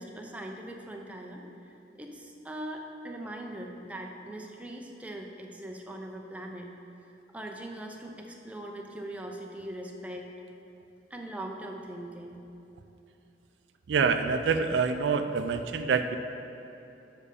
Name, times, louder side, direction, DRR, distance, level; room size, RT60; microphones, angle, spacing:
voice 1, 0.0-1.4 1.9-6.7 7.3-10.3 11.1-12.4, right 1 dB, 10° right, 1 dB, 0.5 m, -41 dB
voice 2, 13.9-16.2, right 5 dB, 70° right, 8 dB, 0.4 m, -26 dB
6.9 x 5.5 x 5.0 m, 2.9 s
head